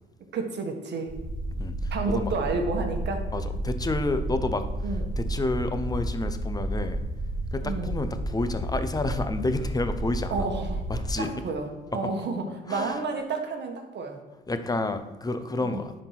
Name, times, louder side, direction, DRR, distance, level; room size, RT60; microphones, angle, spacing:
voice 1, 0.3-1.1 1.9-3.2 4.8-5.0 7.6-8.0 10.3-10.8 11.2-11.7 11.9-14.2 15.6-15.8, right 4 dB, 60° right, 3 dB, 1.6 m, -30 dB
sound 1, 1.1-11.1, right 1 dB, 30° right, 2.7 m, -31 dB
voice 2, 1.6-2.3 3.3-4.7 5.2-7.0 7.5-10.5 10.9-11.3 12.0-12.1 12.7-13.0 14.5-15.9, left 2 dB, 20° left, 9 dB, 0.8 m, -30 dB
10.5 x 4.5 x 5.8 m, 1.3 s
cardioid pair, 90°, 20 cm